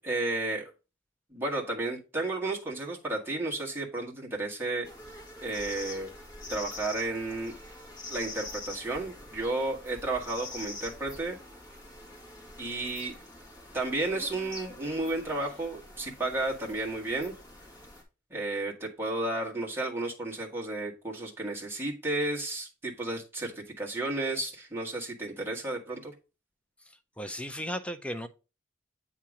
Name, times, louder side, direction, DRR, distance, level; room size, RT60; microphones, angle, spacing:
voice 1, 0.0-0.7 1.3-4.9 5.4-6.1 6.5-7.6 8.1-11.4 12.6-13.2 13.7-17.3 18.3-26.1, right 2 dB, 10° right, 1.4 m, -32 dB
sound 1, 4.8-18.0, left 2 dB, 20° left, 2.0 m, -45 dB
voice 2, 26.9-28.3, equal, 5° left, 0.4 m, -36 dB
8.4 x 2.9 x 4.8 m
head